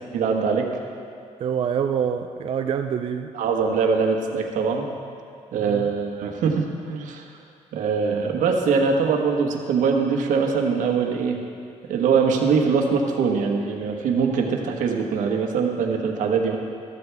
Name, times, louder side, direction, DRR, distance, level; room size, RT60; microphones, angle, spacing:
voice 1, 0.1-0.7 3.3-4.9 5.5-7.2 7.7-11.4 11.9-16.6, right 5 dB, 85° right, 2 dB, 1.4 m, -22 dB
voice 2, 1.4-3.3 5.6-5.9, right 8 dB, 45° right, 6 dB, 0.4 m, -26 dB
14.0 x 13.0 x 3.5 m, 2.3 s
cardioid pair, 125°, 13 cm